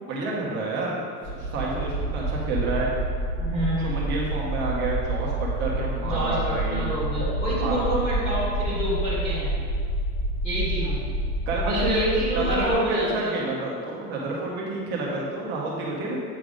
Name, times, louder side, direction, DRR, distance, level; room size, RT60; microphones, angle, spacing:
voice 1, 0.0-2.9 3.8-6.9 7.6-7.8 11.5-12.1 12.3-16.2, right 2 dB, 20° right, -3 dB, 1.1 m, -29 dB
sound 1, 1.2-12.7, right 2 dB, 30° left, 1.3 m, -28 dB
voice 2, 3.4-4.0 6.0-9.5 10.4-11.0 11.6-13.5, equal, 10° left, -9 dB, 1.9 m, -28 dB
8.7 x 5.7 x 5.1 m, 2.2 s
supercardioid pair, 175°, 48 cm